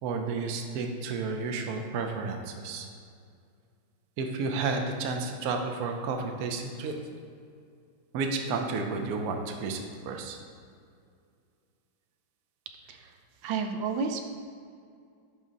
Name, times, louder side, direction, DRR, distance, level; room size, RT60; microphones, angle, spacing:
voice 1, 0.0-2.9 4.2-6.9 8.1-10.4, right 4 dB, 65° right, 4 dB, 1.0 m, -31 dB
voice 2, 13.4-14.2, right 5 dB, 80° right, 5 dB, 1.3 m, -31 dB
11.0 x 4.0 x 4.0 m, 2.3 s
omnidirectional pair, 2.1 m